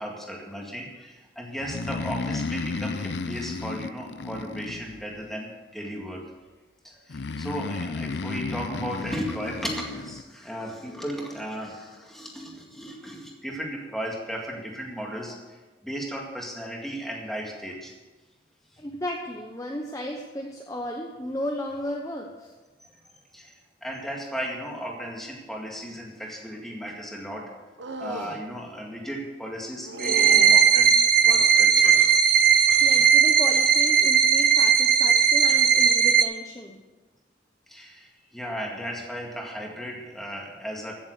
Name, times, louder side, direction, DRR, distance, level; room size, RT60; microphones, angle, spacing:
voice 1, 0.0-6.5 6.8-17.9 22.8-27.5 28.0-32.0 32.2-32.7 37.7-40.9, equal, ahead, -1 dB, 2.0 m, -36 dB
Breathing, 1.6-5.3 7.1-10.2, left 3 dB, 70° left, 0.6 m, -33 dB
voice 2, 18.8-22.5 32.8-36.8, left 1 dB, 15° left, 0 dB, 0.9 m, -34 dB
sound 1, 27.8-28.4 29.8-30.6 31.4-32.2 32.7-33.1 33.5-33.9 35.4-35.6, right 3 dB, 85° right, 1.1 m, -37 dB
sound 2, 30.0-36.2, right 7 dB, 50° right, 0.7 m, -18 dB
15.5 x 7.3 x 6.7 m, 1.2 s
head